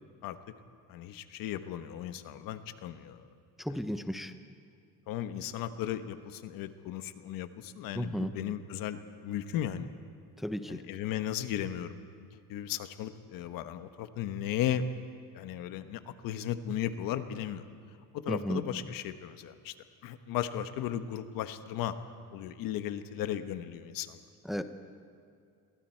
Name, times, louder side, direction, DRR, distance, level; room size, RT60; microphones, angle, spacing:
voice 1, 0.9-3.3 3.7-3.8 5.1-9.9 10.7-14.9 15.3-17.7 18.1-19.7 20.0-22.0 22.3-24.2, left 10 dB, 90° left, 9 dB, 1.2 m, -36 dB
voice 2, 3.6-4.3 7.9-8.3 10.4-10.8 18.3-18.6 24.5-24.6, equal, ahead, 8 dB, 0.7 m, -33 dB
30.0 x 23.0 x 4.5 m, 2.4 s
cardioid pair, 150°, 33 cm